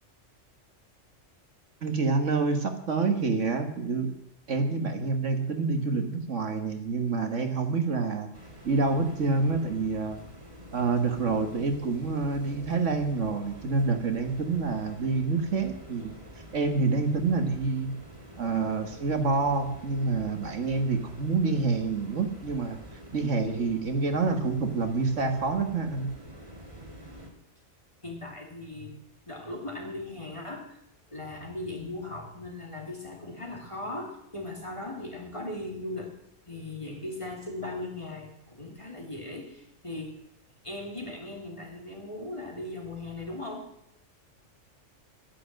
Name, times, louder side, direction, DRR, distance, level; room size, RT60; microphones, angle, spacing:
voice 1, 1.8-4.1 4.5-8.3 8.6-10.2 10.7-16.1 16.5-17.9 18.4-22.8 23.1-26.1, right 4 dB, 70° right, 5 dB, 1.8 m, -27 dB
sound 1, 8.3-27.3, equal, 25° right, 2.3 m, -47 dB
voice 2, 28.0-28.9 29.3-30.8 31.1-36.1 36.5-40.2 40.6-43.7, left 2 dB, 25° left, 0 dB, 2.6 m, -38 dB
11.0 x 10.5 x 7.5 m, 0.80 s
omnidirectional pair, 1.3 m